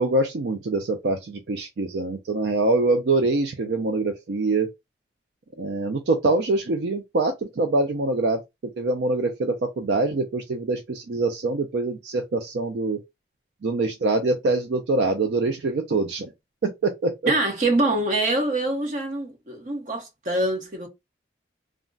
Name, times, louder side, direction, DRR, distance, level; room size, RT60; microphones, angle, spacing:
voice 1, 0.0-4.7 5.6-8.4 8.8-13.0 13.6-16.3 16.6-17.3, right 2 dB, 70° right, 0.4 m, -24 dB
voice 2, 17.3-20.9, right 2 dB, 45° right, 0.8 m, -24 dB
2.4 x 2.1 x 3.7 m
head